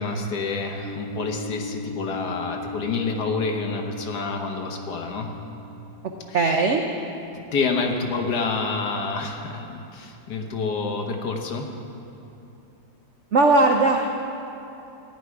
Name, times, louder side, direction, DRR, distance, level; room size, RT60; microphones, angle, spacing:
voice 1, 0.0-5.3 6.3-6.5 7.5-11.7, left 4 dB, 60° left, 3 dB, 1.5 m, -28 dB
sound 1, 0.8-8.7, left 2 dB, 85° right, 1.7 m, -39 dB
voice 2, 6.3-6.8 13.3-14.1, right 3 dB, 65° right, 3 dB, 0.7 m, -18 dB
15.0 x 10.0 x 4.7 m, 2.9 s
omnidirectional pair, 2.1 m